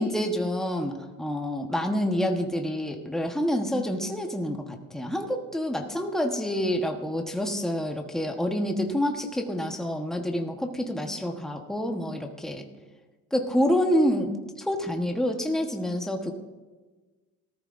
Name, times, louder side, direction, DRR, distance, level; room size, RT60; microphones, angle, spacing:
voice 1, 0.0-12.6 13.3-16.3, equal, ahead, 3 dB, 1.1 m, -27 dB
18.0 x 13.5 x 2.6 m, 1.3 s
cardioid pair, 130°, 33 cm